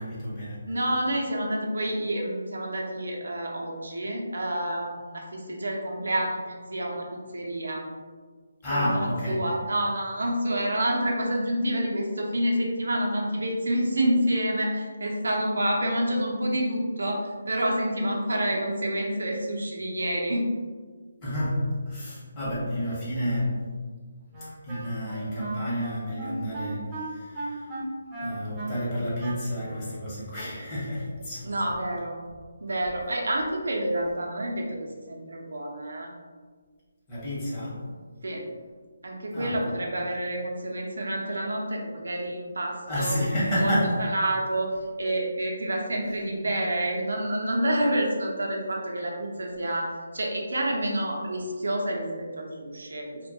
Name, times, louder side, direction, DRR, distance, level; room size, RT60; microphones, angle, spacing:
voice 1, 0.0-0.7 8.6-9.5 21.2-23.7 24.4-27.7 28.1-31.5 37.1-37.9 39.3-39.6 42.9-44.0, equal, 20° left, -9 dB, 0.8 m, -30 dB
voice 2, 0.7-7.1 7.3-7.9 8.7-20.5 31.4-32.2 32.6-36.1 38.2-38.5 39.0-43.2 43.5-43.7 44.0-44.7 45.0-53.3, right 1 dB, 80° right, 0 dB, 0.5 m, -28 dB
Wind instrument woodwind instrument, 24.3-29.9, right 1 dB, 15° right, 0.5 m, -36 dB
2.2 x 2.1 x 2.6 m, 1.5 s
hypercardioid pair, 165°, 0 cm